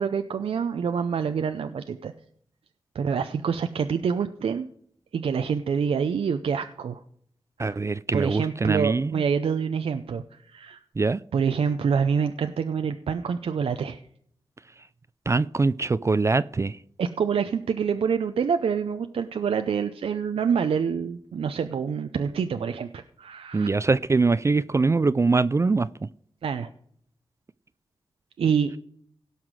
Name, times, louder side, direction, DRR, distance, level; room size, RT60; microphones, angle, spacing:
voice 1, 0.0-2.1 2.9-4.7 5.1-7.0 7.6-7.8 8.1-10.8 11.3-14.0 17.0-23.7 26.4-26.7 28.4-28.8, right 6 dB, 80° right, 0.6 m, -26 dB
voice 2, 7.6-9.2 11.0-11.2 15.3-16.8 23.5-25.9, right 3 dB, 30° right, 0.4 m, -23 dB
17.0 x 5.8 x 4.7 m
cardioid pair, 60°, 10 cm